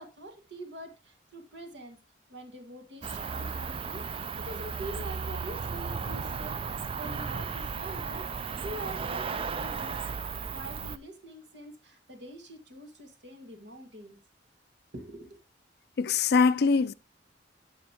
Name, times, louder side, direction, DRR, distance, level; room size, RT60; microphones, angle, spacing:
voice 1, 0.0-2.0 2.3-10.0 10.5-14.2 14.9-15.4, right 1 dB, 70° right, 1.7 m, -44 dB
Cricket, 3.0-11.0, right 5 dB, 30° right, 0.3 m, -35 dB
voice 2, 16.0-16.9, left 5 dB, 55° left, 0.4 m, -23 dB
13.5 x 5.2 x 2.8 m
head